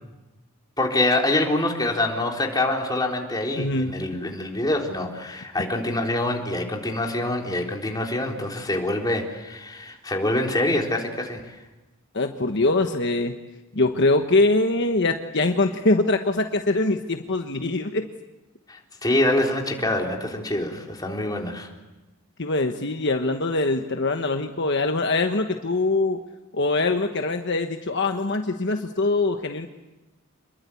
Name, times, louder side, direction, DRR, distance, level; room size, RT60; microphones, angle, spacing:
voice 1, 0.8-11.6 18.7-21.7, left 1 dB, 20° left, 0 dB, 3.7 m, -25 dB
voice 2, 3.6-4.2 12.1-13.4 13.7-18.1 22.4-26.2 26.5-29.7, left 2 dB, 55° left, 5 dB, 1.3 m, -23 dB
28.0 x 22.0 x 8.5 m, 1.1 s
head